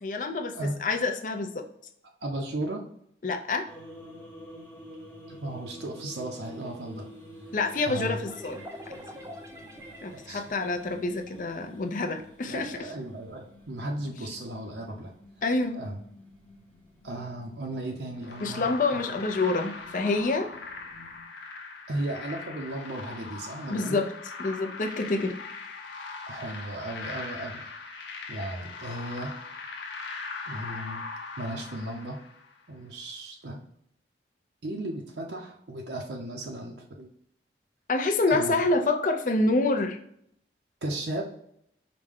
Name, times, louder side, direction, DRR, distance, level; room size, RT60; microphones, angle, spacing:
voice 1, 0.0-1.6 3.2-3.7 7.5-9.0 10.0-12.9 15.4-15.9 18.4-20.5 23.7-24.1 24.4-25.4 37.9-40.0, left 3 dB, 45° left, 4 dB, 0.5 m, -27 dB
voice 2, 2.2-2.9 5.3-7.1 7.8-8.2 10.1-10.4 12.5-15.1 15.8-16.0 17.0-19.0 21.9-24.0 26.3-27.6 28.3-29.4 30.5-31.0 31.4-32.2 32.7-33.6 34.6-37.1 38.3-38.5 40.8-41.2, right 1 dB, 75° right, 1 dB, 0.6 m, -35 dB
sound 1, 3.6-21.2, equal, 10° left, 0.8 m, -50 dB
sound 2, 8.3-11.8, equal, 15° right, 0.4 m, -46 dB
sound 3, 18.2-32.6, left 4 dB, 90° left, 0.7 m, -40 dB
4.9 x 2.2 x 3.5 m, 0.70 s
head